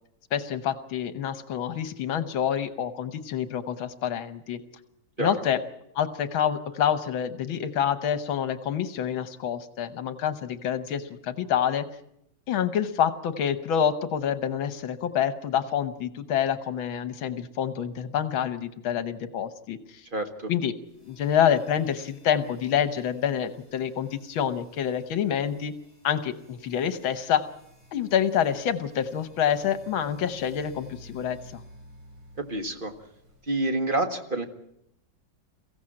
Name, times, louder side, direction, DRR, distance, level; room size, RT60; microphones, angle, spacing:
voice 1, 0.3-4.6 5.2-5.6 6.0-11.9 12.5-20.0 20.5-20.7 21.0-25.7 26.0-27.4 27.9-31.6, left 9 dB, 75° left, 12 dB, 1.8 m, -27 dB
voice 2, 20.1-20.5 32.4-32.9 33.5-34.4, right 2 dB, 25° right, 6 dB, 1.7 m, -28 dB
sound 1, 20.8-33.7, equal, 70° right, 7.8 m, -53 dB
23.5 x 15.5 x 8.7 m, 0.78 s
omnidirectional pair, 2.2 m